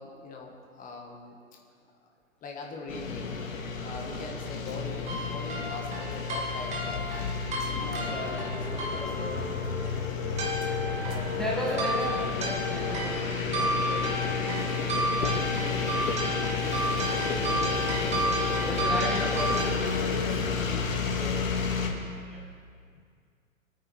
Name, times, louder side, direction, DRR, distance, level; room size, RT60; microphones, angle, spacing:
voice 1, 0.0-1.4 2.0-2.1 2.4-3.3 3.8-7.0 7.8-9.6 10.8-12.3 12.8-14.4 20.1-21.5, left 3 dB, 20° left, 0 dB, 2.1 m, -42 dB
sound 1, 2.9-21.9, left 5 dB, 70° left, 2.5 m, -31 dB
sound 2, 5.1-19.7, right 1 dB, 15° right, 2.4 m, -33 dB
voice 2, 8.1-9.8 11.4-14.4 15.1-16.1 18.6-21.0 22.2-22.5, equal, ahead, -4 dB, 1.7 m, -37 dB
23.5 x 9.4 x 4.7 m, 2.1 s
hypercardioid pair, 125°, 40 cm